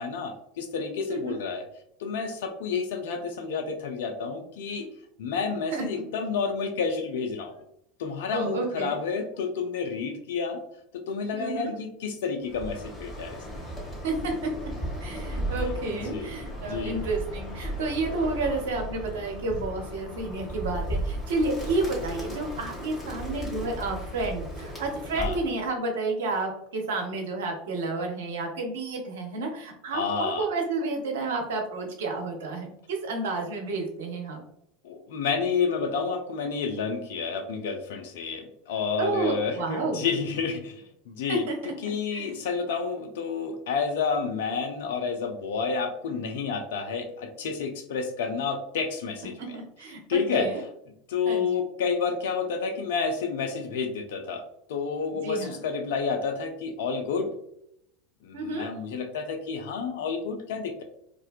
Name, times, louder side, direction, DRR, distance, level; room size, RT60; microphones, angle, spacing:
voice 1, 0.0-1.7 2.0-4.9 5.2-7.5 8.0-10.6 10.9-13.4 15.9-16.3 16.6-17.0 25.2-25.4 29.9-30.5 34.8-41.5 41.8-49.6 50.1-50.5 51.1-54.4 54.7-57.3 58.2-60.8, left 5 dB, 70° left, 5 dB, 0.3 m, -30 dB
voice 2, 8.3-9.0 11.3-11.7 14.0-14.7 15.0-34.4 39.0-40.1 41.3-41.7 42.1-42.3 49.4-50.6 51.2-51.6 55.1-55.6 58.3-58.7, right 3 dB, 70° right, 2 dB, 0.5 m, -31 dB
Bird, 12.4-25.6, equal, 15° left, 1.0 m, -35 dB
2.4 x 2.2 x 2.4 m, 0.75 s
figure-of-eight pair, 80°, 0 cm